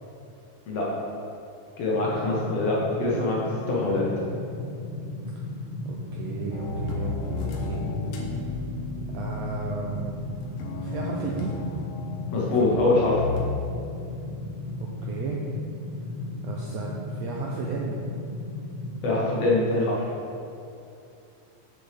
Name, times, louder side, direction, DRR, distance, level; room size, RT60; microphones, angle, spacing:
voice 1, 1.8-3.4 3.7-4.0 12.3-13.2 19.0-20.1, left 2 dB, 65° left, -5 dB, 1.8 m, -24 dB
sound 1, 1.9-19.6, left 1 dB, 55° right, 0.5 m, -35 dB
voice 2, 5.8-7.8 9.1-10.1 10.8-11.6 15.0-15.4 16.4-18.0, right 4 dB, 80° right, -2 dB, 1.5 m, -33 dB
sound 2, 6.5-13.6, left 4 dB, 85° left, 2.3 m, -34 dB
7.9 x 6.8 x 3.4 m, 2.6 s
omnidirectional pair, 3.6 m